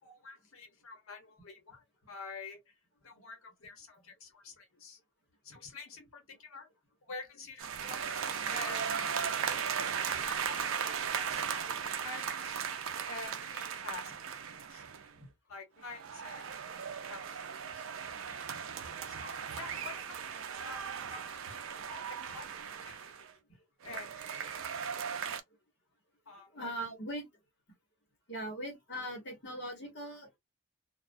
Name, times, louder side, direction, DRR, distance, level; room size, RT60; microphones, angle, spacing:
voice 1, 0.0-2.7 3.0-5.0 5.4-6.7 7.0-9.2 10.2-12.7 13.1-14.9 15.5-17.9 19.0-23.4 23.8-24.7 26.3-26.7, left 3 dB, 80° left, 1.0 m, -48 dB
sound 1, 7.6-15.1 15.8-23.3 23.8-25.4, right 7 dB, 70° right, 0.4 m, -37 dB
voice 2, 26.3-27.3 28.3-30.4, right 1 dB, 55° left, 1.0 m, -40 dB
2.3 x 2.2 x 2.5 m
head